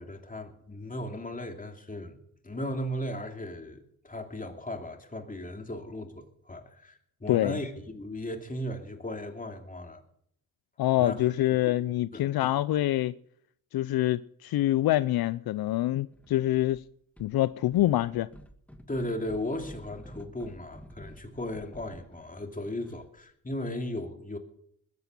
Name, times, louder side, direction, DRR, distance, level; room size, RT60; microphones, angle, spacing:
voice 1, 0.0-2.2 2.4-10.0 11.0-11.8 12.1-12.5 18.9-24.4, left 1 dB, 20° left, 2.7 m, -36 dB
voice 2, 7.3-7.6 10.8-13.1 13.7-16.8 17.2-18.3, left 15 dB, 75° left, 0.5 m, -26 dB
sound 1, 16.1-16.8 17.2-23.2, equal, 5° left, 1.9 m, -50 dB
21.0 x 8.3 x 6.8 m
cardioid pair, 70°, 37 cm